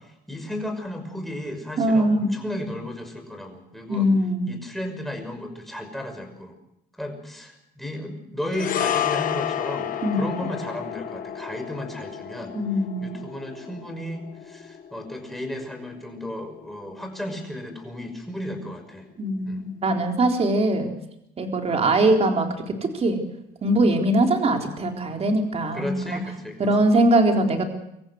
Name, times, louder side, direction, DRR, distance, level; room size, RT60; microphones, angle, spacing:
voice 1, 0.0-4.1 4.5-6.5 7.0-12.6 13.0-19.1 19.5-19.6 21.7-21.8 25.7-26.7, left 1 dB, ahead, 4 dB, 5.9 m, -34 dB
voice 2, 1.8-2.3 3.9-4.5 10.0-10.5 12.5-13.1 19.2-20.9 21.4-22.5 22.8-23.2 23.6-26.2 26.6-27.6, right 1 dB, 40° right, 3 dB, 4.0 m, -21 dB
sound 1, 8.5-17.0 17.3-17.5, left 9 dB, 55° left, 1.7 m, -31 dB
25.5 x 14.5 x 8.0 m, 0.82 s
cardioid pair, 110°, 17 cm